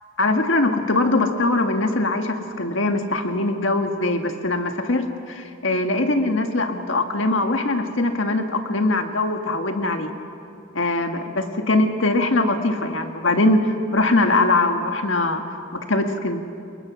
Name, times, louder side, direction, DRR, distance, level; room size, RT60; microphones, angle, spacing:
voice 1, 0.2-10.1 10.7-13.6 13.9-15.4 15.9-16.4, left 2 dB, 80° left, 5 dB, 1.7 m, -21 dB
28.0 x 22.5 x 6.2 m, 2.5 s
head